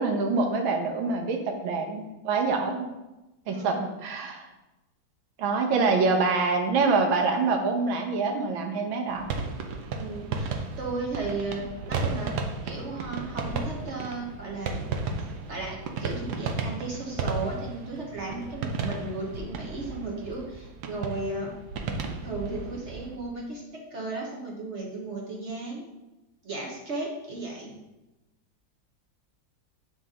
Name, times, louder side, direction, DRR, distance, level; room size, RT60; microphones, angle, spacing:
voice 1, 0.0-2.9 3.5-4.4 5.4-9.2, right 4 dB, 85° right, 3 dB, 1.7 m, -25 dB
sound 1, 9.1-23.2, right 4 dB, 65° right, 1.1 m, -34 dB
voice 2, 9.9-12.3 12.6-14.9 15.5-21.5 22.2-25.8 26.4-27.7, right 2 dB, 45° right, -2 dB, 1.0 m, -35 dB
7.6 x 4.1 x 3.6 m, 1.0 s
omnidirectional pair, 2.1 m